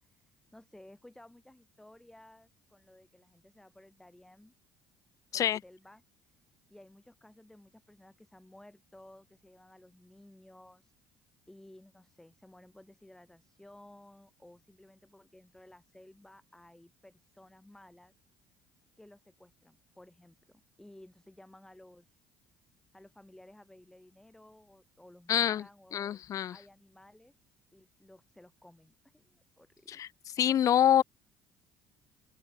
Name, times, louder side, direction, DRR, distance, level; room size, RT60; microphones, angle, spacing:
voice 1, 0.0-4.5 5.3-6.4 6.7-10.9 11.5-18.1 19.0-22.2 22.9-26.2 26.5-27.3 27.7-30.0, left 1 dB, 5° left, 3.9 m, -56 dB
voice 2, 25.3-25.6 25.9-26.5 29.9-30.1 30.4-31.0, left 10 dB, 50° left, 0.5 m, -26 dB
open air
supercardioid pair, 80°, 7 cm